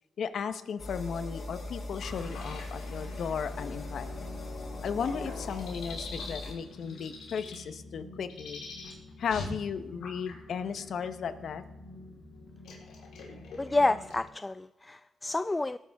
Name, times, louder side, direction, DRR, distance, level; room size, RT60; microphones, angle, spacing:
voice 1, 0.2-4.3 4.8-8.6 9.2-11.6, left 6 dB, 70° left, 11 dB, 1.0 m, -35 dB
sound 1, 0.8-6.5, left 2 dB, 45° left, 3.6 m, -40 dB
sound 2, 2.0-14.3, left 3 dB, 90° left, 4.1 m, -44 dB
voice 2, 13.6-15.8, left 2 dB, 20° left, 14 dB, 0.3 m, -29 dB
19.0 x 11.0 x 3.6 m, 1.0 s
cardioid pair, 80°, 0 cm